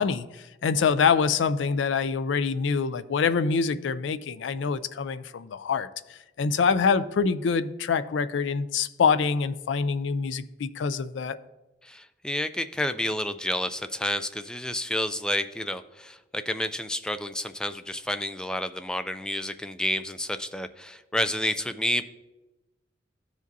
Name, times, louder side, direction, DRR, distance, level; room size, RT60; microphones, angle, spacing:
voice 1, 0.0-11.4, left 5 dB, 80° left, 13 dB, 0.4 m, -25 dB
voice 2, 11.8-22.0, left 1 dB, 5° left, 11 dB, 0.3 m, -30 dB
14.0 x 5.0 x 2.7 m, 1.0 s
head